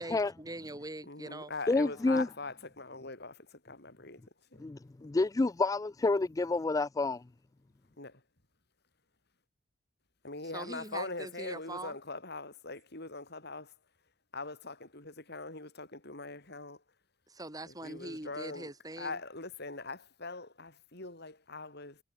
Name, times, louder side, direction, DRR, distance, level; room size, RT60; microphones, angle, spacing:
voice 1, 0.0-1.5 10.5-12.0 17.3-19.2, right 2 dB, 20° right, 3.6 m, -42 dB
voice 2, 1.0-4.2 4.5-4.7 8.0-8.2 10.2-13.7 14.3-16.8 17.7-18.7 19.0-22.0, left 3 dB, 60° left, 7.7 m, -42 dB
voice 3, 1.7-2.3 4.6-7.2, left 3 dB, 20° left, 0.3 m, -29 dB
head